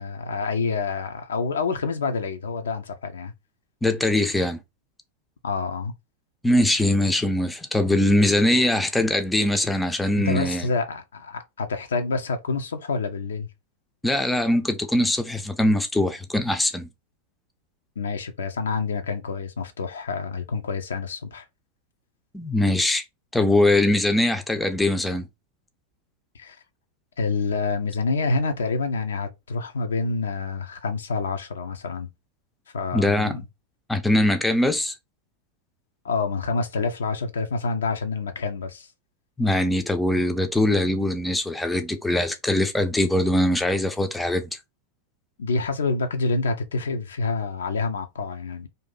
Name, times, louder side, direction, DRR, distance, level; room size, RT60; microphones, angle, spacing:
voice 1, 0.0-3.3 5.4-5.9 8.5-8.6 10.3-13.5 18.0-21.4 26.3-26.6 27.2-32.1 32.7-33.4 36.0-38.9 45.4-48.7, left 4 dB, 65° left, 0.5 m, -27 dB
voice 2, 3.8-4.6 6.4-10.7 14.0-16.9 22.3-23.0 23.3-25.3 32.9-33.4 33.9-34.9 39.4-44.5, left 1 dB, 5° left, 0.4 m, -22 dB
2.6 x 2.5 x 3.8 m
figure-of-eight pair, 90°, 0 cm